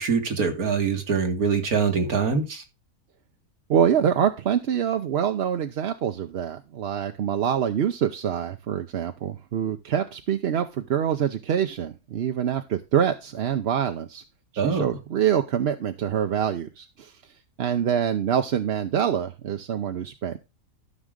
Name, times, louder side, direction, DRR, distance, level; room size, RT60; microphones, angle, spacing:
voice 1, 0.0-2.6 14.6-14.8, right 5 dB, 85° right, 5 dB, 2.3 m, -24 dB
voice 2, 3.7-14.2 14.5-17.1 17.6-20.5, right 9 dB, 55° right, 6 dB, 0.8 m, -25 dB
13.5 x 6.2 x 3.7 m, 0.26 s
omnidirectional pair, 1.5 m